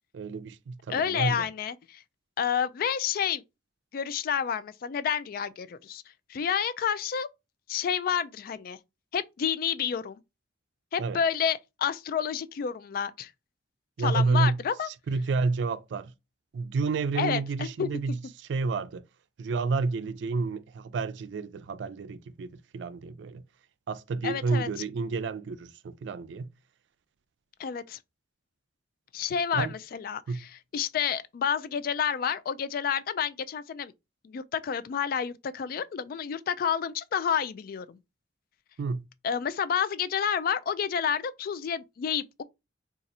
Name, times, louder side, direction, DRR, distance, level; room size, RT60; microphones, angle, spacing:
voice 1, 0.1-1.4 11.0-11.2 14.0-14.6 14.9-16.1 16.5-18.2 18.5-19.0 19.4-23.4 23.9-26.5 29.5-29.7 30.3-30.4 38.8-39.0, right 4 dB, 85° right, 0.4 m, -30 dB
voice 2, 0.9-2.0 2.4-3.4 3.9-6.0 6.3-7.3 7.7-8.8 9.1-10.2 10.9-13.3 14.0-14.9 17.2-18.2 24.2-24.7 27.6-28.0 29.1-33.9 34.2-38.0 39.2-42.4, left 7 dB, 55° left, 0.3 m, -29 dB
2.6 x 2.4 x 4.0 m
head